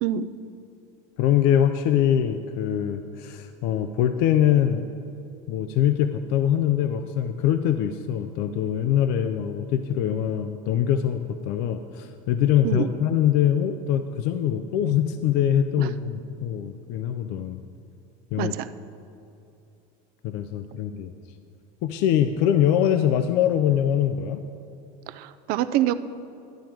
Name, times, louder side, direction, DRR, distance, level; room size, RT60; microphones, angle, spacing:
voice 1, 1.2-4.8 5.5-17.6 18.3-18.5 20.2-21.1 21.8-24.4, left 10 dB, 65° left, 9 dB, 0.5 m, -23 dB
voice 2, 25.1-25.9, right 12 dB, 55° right, 12 dB, 0.5 m, -25 dB
11.5 x 8.8 x 4.6 m, 2.8 s
cardioid pair, 150°, 18 cm